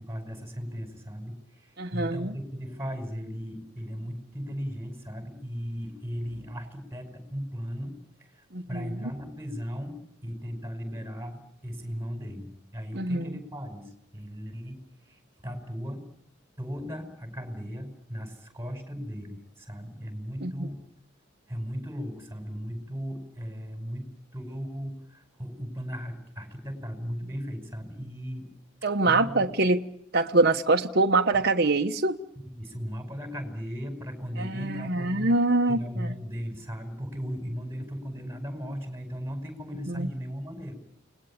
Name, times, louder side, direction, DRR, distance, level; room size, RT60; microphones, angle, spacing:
voice 1, 0.0-16.0 16.6-20.9 21.5-28.5 29.1-29.5 32.4-35.4 35.7-40.7, equal, 15° right, 7 dB, 5.4 m, -37 dB
voice 2, 1.8-2.3 8.5-8.9 12.9-13.4 20.4-20.7 28.8-29.8 30.1-32.2 34.4-36.1 39.9-40.1, right 2 dB, 55° right, 4 dB, 1.2 m, -24 dB
29.5 x 20.0 x 8.7 m, 0.69 s
head